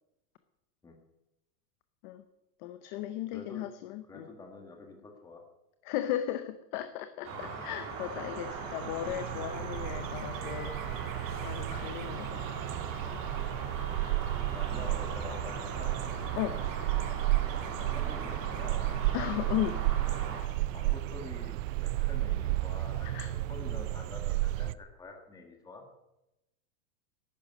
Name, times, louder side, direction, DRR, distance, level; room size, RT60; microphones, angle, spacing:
voice 1, 2.6-4.3 5.8-10.8 11.4-12.4 16.3-16.6 19.1-19.8 23.0-23.3, left 12 dB, 30° left, 11 dB, 0.6 m, -36 dB
voice 2, 3.3-3.7 4.1-5.4 14.5-15.9 17.6-18.8 20.5-25.8, left 3 dB, 5° left, 3 dB, 1.5 m, -47 dB
sound 1, 7.2-20.4, right 4 dB, 25° right, 3.1 m, -40 dB
sound 2, 7.9-8.0 8.2-24.7, right 16 dB, 55° right, 0.5 m, -33 dB
11.5 x 10.0 x 9.5 m, 0.92 s
supercardioid pair, 160°, 48 cm